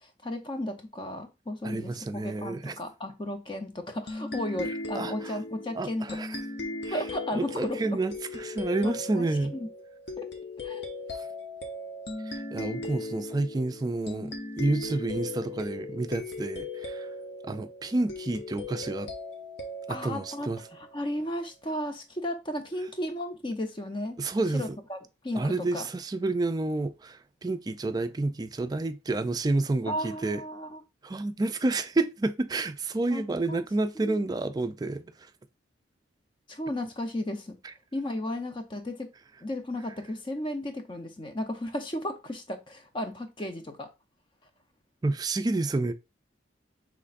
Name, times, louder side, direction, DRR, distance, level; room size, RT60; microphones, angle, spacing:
voice 1, 0.0-2.0 2.2-6.3 6.9-8.0 8.8-9.3 9.5-9.7 10.2-10.3 10.6-10.9 19.9-24.2 24.5-25.0 25.2-25.9 29.9-30.8 33.1-33.6 34.0-34.2 36.5-37.6 37.9-39.1 39.4-43.9, left 1 dB, 25° left, 0.6 m, -34 dB
voice 2, 1.6-2.7 4.9-5.4 5.8-6.4 6.8-7.0 7.3-9.5 12.3-17.1 17.4-19.1 19.9-20.6 24.2-24.8 25.3-30.4 31.0-35.3 45.0-45.9, right 2 dB, 20° right, 0.3 m, -29 dB
sound 1, 4.1-21.2, left 2 dB, 65° left, 0.8 m, -38 dB
5.2 x 3.2 x 2.5 m
head